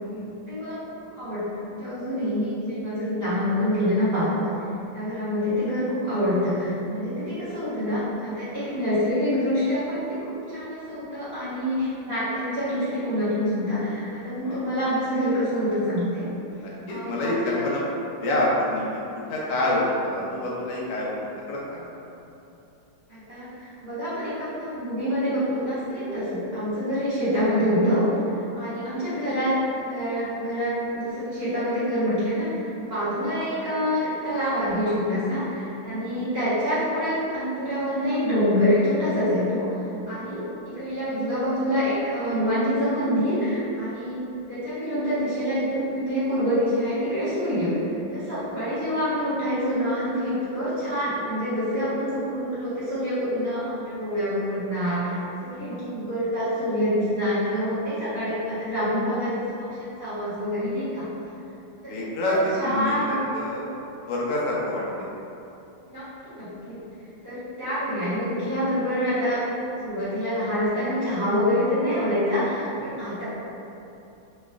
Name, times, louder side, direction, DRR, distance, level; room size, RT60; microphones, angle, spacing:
voice 1, 0.1-4.5 4.9-16.3 16.9-17.6 23.1-28.0 28.3-39.7 40.1-47.7 48.1-55.1 55.4-59.3 59.6-61.0 61.8-63.2 65.8-66.8 67.2-69.4 69.7-73.2, equal, 35° right, -14 dB, 1.2 m, -26 dB
voice 2, 16.5-18.8 19.1-21.1 21.5-21.9 28.6-28.7 32.8-33.0 40.1-40.3 48.4-48.5 61.9-63.7 64.1-65.1 72.8-73.0, left 1 dB, 70° left, -5 dB, 0.9 m, -27 dB
3.1 x 3.0 x 2.3 m, 2.8 s
omnidirectional pair, 2.1 m